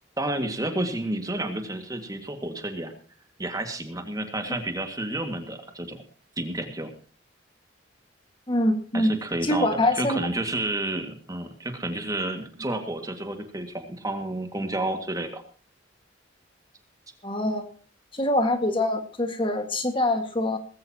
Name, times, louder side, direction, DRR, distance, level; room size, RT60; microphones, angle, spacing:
voice 1, 0.2-2.9 3.4-6.0 6.4-6.9 8.9-15.4, right 1 dB, 20° right, 6 dB, 2.0 m, -30 dB
voice 2, 8.5-9.1 9.4-10.2 17.2-17.6 18.1-20.6, left 1 dB, 25° left, 6 dB, 1.8 m, -24 dB
19.5 x 16.0 x 2.9 m, 0.40 s
head